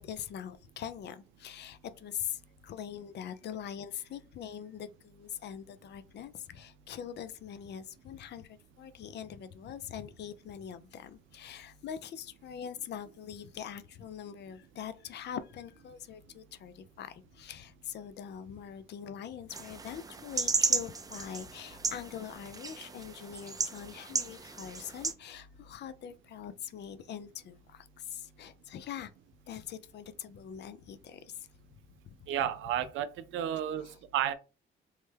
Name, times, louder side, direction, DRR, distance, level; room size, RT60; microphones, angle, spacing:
voice 1, 0.0-29.1 29.5-31.5 32.0-32.3 33.8-34.0, left 9 dB, 60° left, 0.4 m, -43 dB
sound 1, 19.5-25.1, right 4 dB, 20° right, 0.4 m, -34 dB
voice 2, 32.3-33.1 33.3-33.8 34.1-34.3, right 10 dB, 80° right, 0.4 m, -31 dB
3.2 x 2.1 x 3.2 m
cardioid pair, 90°, 20 cm